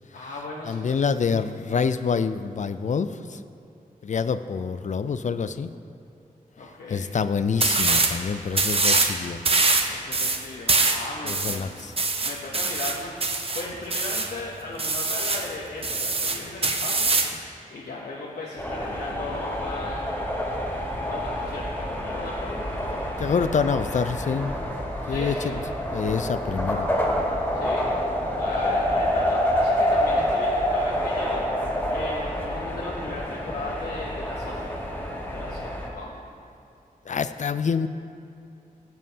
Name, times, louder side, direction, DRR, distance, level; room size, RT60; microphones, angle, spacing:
voice 1, 0.1-1.0 6.6-7.1 9.9-11.9 12.2-20.1 21.1-22.8 25.0-25.6 27.5-27.9 28.3-31.4 31.9-34.7 35.3-36.1, left 2 dB, 90° left, -3 dB, 0.9 m, -37 dB
voice 2, 0.6-3.4 4.0-5.7 6.9-9.4 11.3-11.9 23.2-24.6 25.1-25.6 25.9-26.9 37.1-37.9, left 5 dB, 55° left, 12 dB, 0.4 m, -26 dB
sound 1, 7.6-8.2 8.5-9.1 9.5-14.3 14.8-15.5 15.8-17.4, right 3 dB, 40° right, 0.7 m, -23 dB
sound 2, 18.6-35.9, equal, 10° left, 2.0 m, -27 dB
16.5 x 7.3 x 2.8 m, 2.6 s
cardioid pair, 65°, 15 cm